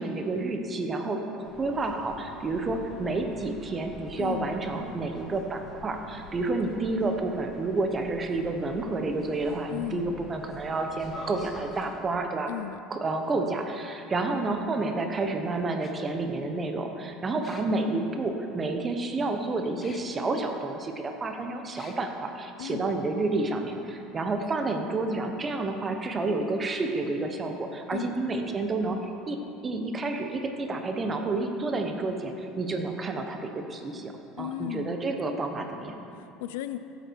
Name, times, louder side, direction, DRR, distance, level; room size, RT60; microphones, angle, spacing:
voice 1, 0.0-12.5 12.9-29.4 29.6-34.1 34.4-36.0, right 3 dB, 25° right, 4 dB, 1.2 m, -30 dB
sound 1, 1.4-11.8, left 1 dB, 15° left, 2.7 m, -46 dB
voice 2, 4.2-4.6 9.7-10.2 12.5-12.8 22.6-22.9 27.9-28.1 34.4-35.0 36.1-36.8, left 13 dB, 90° left, 11 dB, 0.5 m, -35 dB
sound 2, 13.2-13.3 14.8-14.9 15.8-15.9 17.4-17.8 19.8-20.0 20.6-20.7 21.8-22.0, left 5 dB, 30° left, 0.9 m, -49 dB
15.0 x 8.3 x 4.7 m, 2.8 s
supercardioid pair, 125°, 0 cm